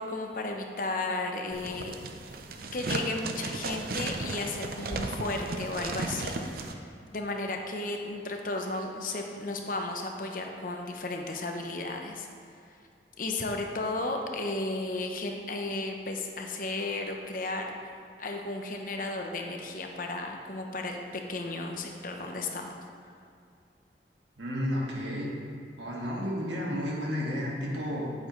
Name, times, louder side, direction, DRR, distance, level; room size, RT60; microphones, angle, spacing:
voice 1, 0.0-1.9 2.7-6.4 7.1-12.3 13.2-17.7 18.2-22.7, left 2 dB, 50° left, 3 dB, 0.8 m, -34 dB
sound 1, 1.5-6.7, right 3 dB, 55° right, 0.6 m, -35 dB
voice 2, 24.4-25.3 25.8-28.1, equal, 90° right, -3 dB, 1.8 m, -32 dB
8.7 x 8.5 x 3.2 m, 2.3 s
head